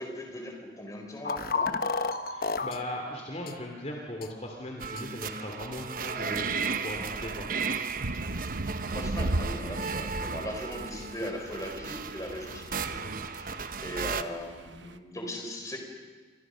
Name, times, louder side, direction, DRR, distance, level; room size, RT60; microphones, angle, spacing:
voice 1, 0.0-1.8 8.9-13.0 13.3-15.8, left 1 dB, 20° left, 3 dB, 4.3 m, -39 dB
sound 1, 1.2-2.8 3.5-3.6 4.2-4.3 5.0-5.1, left 4 dB, 50° left, 1.2 m, -30 dB
voice 2, 2.3-7.5 13.5-13.8, left 1 dB, 35° left, 1 dB, 3.1 m, -38 dB
sound 2, 4.8-14.2, right 5 dB, 50° right, 1.1 m, -35 dB
sound 3, 8.0-15.0, right 1 dB, 80° right, 1.0 m, -37 dB
29.0 x 25.5 x 6.4 m, 1.5 s
head